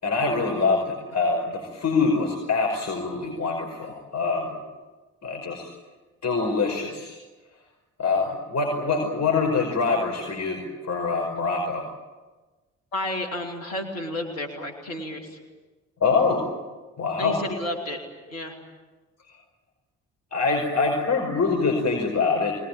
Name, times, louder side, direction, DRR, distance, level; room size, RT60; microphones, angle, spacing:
voice 1, 0.0-4.6 5.2-5.7 6.2-7.2 8.0-11.8 16.0-16.5 17.0-17.4 20.3-22.5, left 4 dB, 45° left, 1 dB, 5.4 m, -24 dB
voice 2, 12.9-15.3 17.2-18.0 18.3-18.5, left 1 dB, 90° left, 2 dB, 2.9 m, -31 dB
24.0 x 20.0 x 8.9 m, 1.2 s
hypercardioid pair, 45°, 39 cm